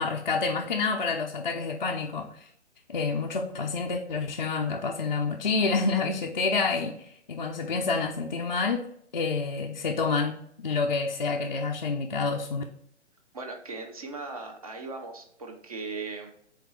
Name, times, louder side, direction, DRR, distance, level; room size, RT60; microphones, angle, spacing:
voice 1, 0.0-2.5 2.9-8.9 9.1-12.6, left 4 dB, 40° left, 0.4 m, -28 dB
voice 2, 13.3-16.3, right 3 dB, 30° right, 0.6 m, -38 dB
4.2 x 4.0 x 3.1 m
figure-of-eight pair, 140°, 36 cm